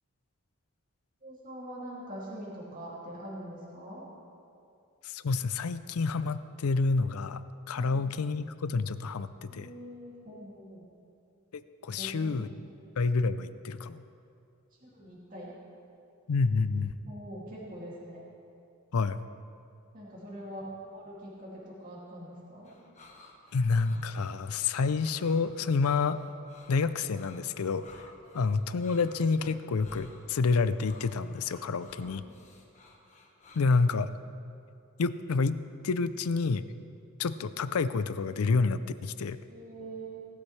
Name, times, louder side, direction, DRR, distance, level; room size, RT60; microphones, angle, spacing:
voice 1, 1.2-4.0 7.7-8.0 9.5-10.8 11.9-12.5 14.8-15.5 17.1-18.2 19.9-22.7 28.2-28.3 32.0-32.1 39.5-40.3, right 1 dB, 40° right, -6 dB, 2.5 m, -43 dB
voice 2, 5.0-7.4 7.7-9.7 11.8-12.5 13.0-14.0 16.3-17.0 18.9-19.2 23.5-26.2 26.7-28.1 28.3-32.2 33.5-34.1 35.0-35.6 35.8-36.6 37.2-39.4, left 4 dB, 85° left, 13 dB, 0.5 m, -28 dB
sound 1, 22.7-33.9, left 2 dB, 35° left, 1.3 m, -55 dB
18.0 x 13.0 x 3.3 m, 2.6 s
head